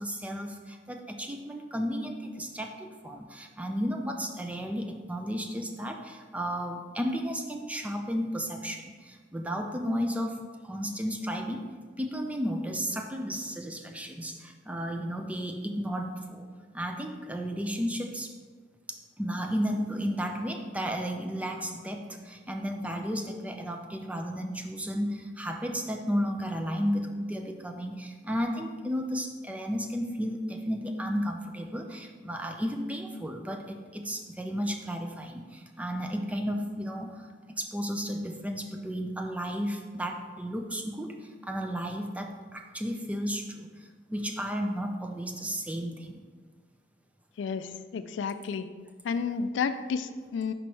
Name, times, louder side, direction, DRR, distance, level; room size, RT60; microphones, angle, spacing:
voice 1, 0.0-10.4 10.6-11.6 12.0-16.5 16.7-18.3 18.9-37.3 37.6-43.7 44.1-46.2, equal, 10° right, 3 dB, 0.4 m, -33 dB
voice 2, 47.4-48.7 49.0-50.5, left 5 dB, 85° left, 11 dB, 0.3 m, -31 dB
5.1 x 4.5 x 4.6 m, 1.5 s
head